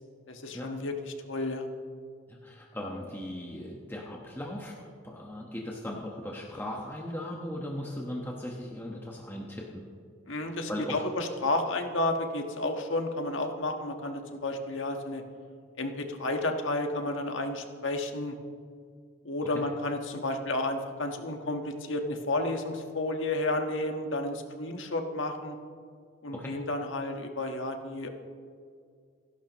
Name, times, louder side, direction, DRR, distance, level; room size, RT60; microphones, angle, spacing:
voice 1, 0.3-1.7 10.3-15.2 15.8-18.4 19.2-25.6 26.2-28.1, left 2 dB, 70° left, 4 dB, 1.5 m, -31 dB
voice 2, 2.3-9.8 10.7-11.0 19.5-19.6 26.3-26.6, left 1 dB, 10° left, -2 dB, 1.3 m, -38 dB
28.0 x 11.5 x 3.1 m, 2.2 s
head